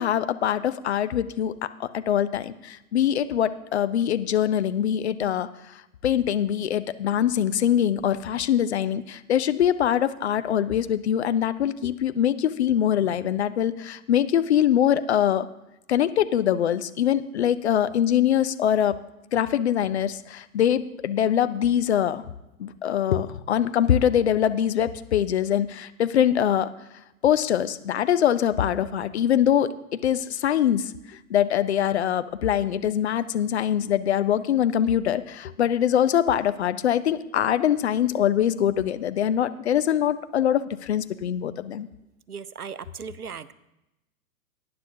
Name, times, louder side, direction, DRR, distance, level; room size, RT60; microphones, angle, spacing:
voice 1, 0.0-5.5 6.0-15.5 15.9-19.0 19.3-22.2 22.6-26.7 27.2-30.9 31.3-41.9, left 10 dB, 50° left, 13 dB, 0.6 m, -23 dB
voice 2, 42.3-43.5, right 6 dB, 90° right, 16 dB, 0.6 m, -37 dB
18.5 x 9.7 x 2.7 m, 0.94 s
figure-of-eight pair, 115°, 44 cm